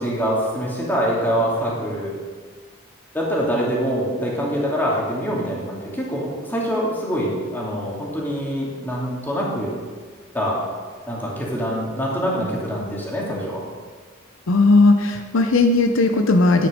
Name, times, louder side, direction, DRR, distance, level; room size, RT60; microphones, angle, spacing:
voice 1, 0.0-2.2 3.1-9.7 10.3-10.6 11.1-13.6, equal, 10° left, -4 dB, 2.6 m, -24 dB
voice 2, 14.5-16.7, left 3 dB, 65° left, 5 dB, 0.7 m, -16 dB
10.5 x 9.6 x 5.2 m, 1.5 s
head